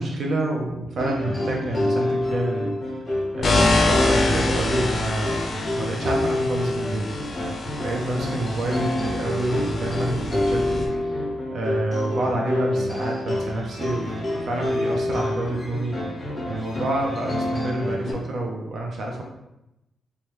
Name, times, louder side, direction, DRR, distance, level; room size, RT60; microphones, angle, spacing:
voice 1, 0.0-2.7 3.3-7.1 7.8-16.2 16.5-19.2, right 1 dB, 55° right, -1 dB, 0.5 m, -28 dB
sound 1, 1.0-18.1, left 1 dB, 20° left, 0.9 m, -28 dB
sound 2, 3.4-10.9, left 2 dB, 45° left, 0.4 m, -26 dB
2.9 x 2.2 x 3.3 m, 0.90 s
wide cardioid pair, 150°, 0 cm